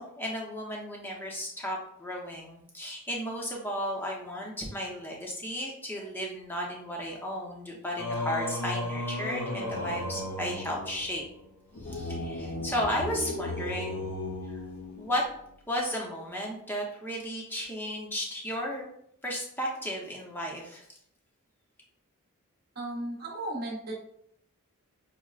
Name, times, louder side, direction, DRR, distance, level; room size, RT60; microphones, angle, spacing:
voice 1, 0.0-11.2 11.8-14.1 14.5-14.6 15.0-15.2 15.7-18.9 19.2-20.9, equal, 10° left, -2 dB, 0.6 m, -34 dB
Singing, 8.0-15.3, left 1 dB, 90° left, 0.6 m, -35 dB
voice 2, 22.8-23.9, right 1 dB, 45° right, -3 dB, 0.9 m, -35 dB
5.9 x 2.1 x 2.3 m, 0.71 s
head